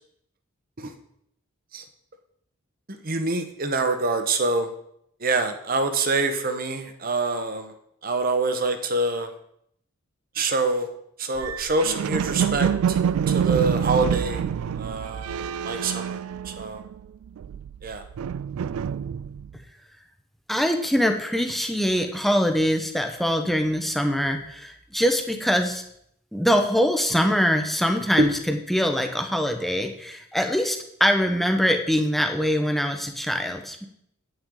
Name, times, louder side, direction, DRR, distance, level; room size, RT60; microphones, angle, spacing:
voice 1, 2.9-4.7 5.2-7.7 8.0-9.3 10.3-10.9 11.2-13.0 13.3-14.4 14.8-16.8 17.8-18.0 28.2-28.3, right 3 dB, 45° right, 8 dB, 0.9 m, -25 dB
sound 1, 11.4-17.0 17.3-19.5, right 8 dB, 90° right, 0.3 m, -27 dB
voice 2, 20.5-25.8 26.3-33.8, equal, ahead, 5 dB, 0.7 m, -23 dB
9.0 x 8.6 x 3.8 m, 0.72 s
head